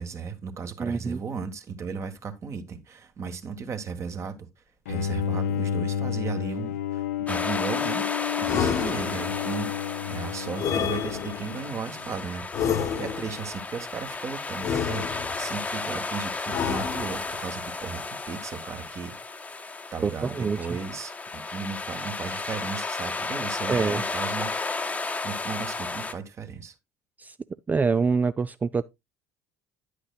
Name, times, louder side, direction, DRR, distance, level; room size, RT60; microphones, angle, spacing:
voice 1, 0.0-4.5 4.9-8.0 8.4-9.8 10.1-12.6 13.0-19.4 19.9-26.7, right 5 dB, 35° right, 1.4 m, -36 dB
voice 2, 0.8-1.2 20.0-20.6 23.7-24.0 27.2-27.3 27.7-28.9, right 5 dB, 20° right, 0.4 m, -25 dB
Bowed string instrument, 4.9-12.1, left 9 dB, 70° left, 0.5 m, -31 dB
sound 1, 7.3-26.1, left 3 dB, 15° left, 1.0 m, -33 dB
sound 2, 8.4-9.5 10.6-11.6 12.5-13.5 14.6-15.5 16.5-17.4, left 7 dB, 45° left, 1.1 m, -29 dB
10.0 x 8.4 x 2.3 m
figure-of-eight pair, 60°, 8 cm